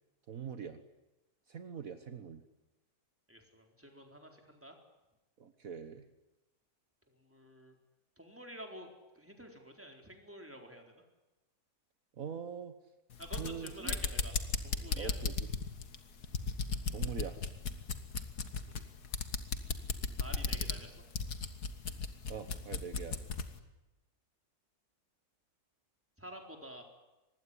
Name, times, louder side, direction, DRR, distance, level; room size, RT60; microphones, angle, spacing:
voice 1, 0.3-0.8 1.5-2.4 5.4-6.0 12.2-12.7 13.4-14.0 14.9-15.3 16.9-17.4 22.3-23.2, right 7 dB, 60° right, 9 dB, 1.6 m, -43 dB
voice 2, 3.3-4.8 7.1-7.8 8.2-10.9 13.2-14.3 14.6-15.1 18.6-19.2 20.2-20.9 26.2-26.8, equal, 10° right, 3 dB, 4.2 m, -49 dB
sound 1, 13.1-23.5, left 5 dB, 80° left, 2.2 m, -36 dB
25.0 x 20.5 x 10.0 m, 1.0 s
omnidirectional pair, 1.7 m